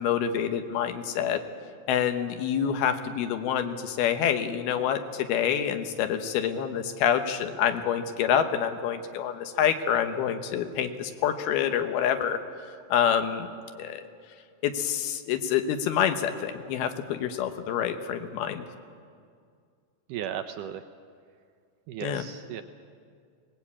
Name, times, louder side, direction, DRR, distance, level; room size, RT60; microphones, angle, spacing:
voice 1, 0.0-1.4 1.9-12.4 12.9-13.5 13.8-14.0 14.6-18.7 22.0-22.2, left 9 dB, 85° left, 8 dB, 3.1 m, -27 dB
voice 2, 20.1-20.8 21.9-22.6, right 10 dB, 80° right, 7 dB, 1.9 m, -35 dB
21.5 x 19.0 x 8.6 m, 2.2 s
omnidirectional pair, 4.3 m